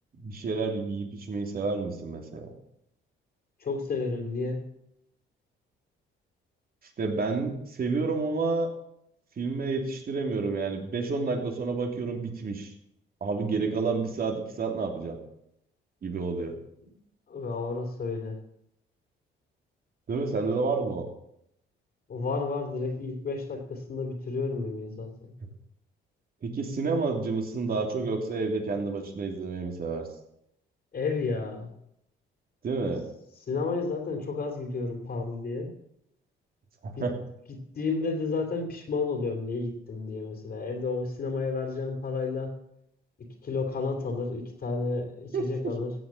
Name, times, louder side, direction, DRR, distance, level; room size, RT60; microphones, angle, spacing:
voice 1, 0.2-2.5 7.0-8.7 9.4-12.7 13.2-15.2 16.0-16.6 20.1-21.1 26.4-30.1 32.6-33.1 36.8-37.2 45.3-45.4, right 4 dB, 50° right, 3 dB, 3.1 m, -29 dB
voice 2, 3.6-4.7 17.3-18.4 22.1-25.1 30.9-31.7 33.5-35.7 37.0-37.1 37.5-42.6 43.2-45.9, left 4 dB, 50° left, 3 dB, 3.2 m, -31 dB
15.5 x 7.7 x 7.2 m, 0.76 s
cardioid pair, 90°, 20 cm